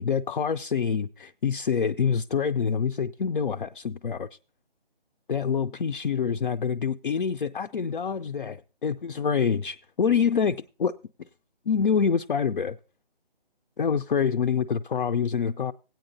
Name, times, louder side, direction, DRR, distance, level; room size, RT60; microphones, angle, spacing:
voice 1, 0.0-4.3 5.3-10.9 11.7-12.8 13.8-15.7, left 6 dB, 60° left, 0.4 m, -26 dB
17.0 x 8.9 x 2.6 m
figure-of-eight pair, 170°, 30 cm